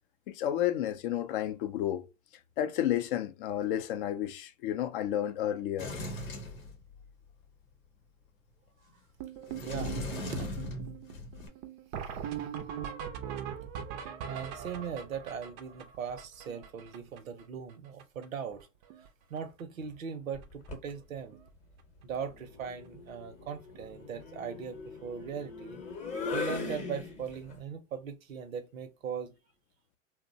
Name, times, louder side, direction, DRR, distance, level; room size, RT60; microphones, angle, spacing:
voice 1, 0.3-2.1 2.6-5.9, left 11 dB, 45° left, 0.4 m, -31 dB
Sliding door, 5.8-7.3 9.5-11.5, left 2 dB, 90° left, 0.9 m, -39 dB
sound 1, 9.2-17.4 17.7-17.8 18.0-18.3 18.5-19.1 19.4-19.6 20.4-20.5 20.9-21.0 21.3-21.5 23.8-23.9 26.2-26.3, right 9 dB, 35° right, 0.4 m, -41 dB
voice 2, 9.6-10.0 10.3-10.5 14.3-18.7 19.3-21.4 22.0-25.8 26.3-29.3, right 7 dB, 85° right, 0.7 m, -39 dB
sound 2, 20.4-20.9 22.3-27.5, left 4 dB, 20° left, 0.8 m, -40 dB
2.9 x 2.1 x 2.5 m
hypercardioid pair, 105°, 39 cm